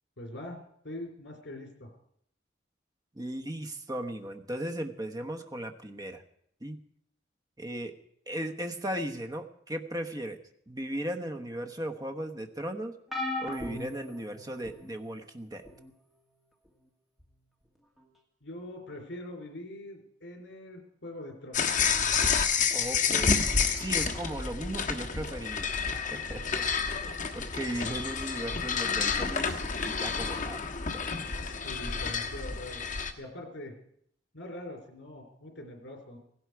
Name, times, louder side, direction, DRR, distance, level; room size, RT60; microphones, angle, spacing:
voice 1, 0.2-0.6 0.8-1.9 18.4-21.6 26.5-26.7 31.3-32.8 33.2-33.8 34.3-36.2, left 1 dB, 80° left, 3 dB, 3.5 m, -43 dB
voice 2, 3.1-6.2 6.6-6.8 7.6-7.9 8.3-10.4 10.7-13.0 13.4-15.6 22.7-23.5 23.8-26.8 27.3-30.6 30.9-31.1, right 1 dB, 20° right, 6 dB, 1.1 m, -37 dB
sound 1, 13.1-14.9 15.6-15.9 17.2-17.3, left 2 dB, ahead, 1.8 m, -37 dB
sound 2, 21.5-33.1, left 6 dB, 45° left, 1.3 m, -29 dB
16.5 x 16.5 x 4.7 m, 0.69 s
head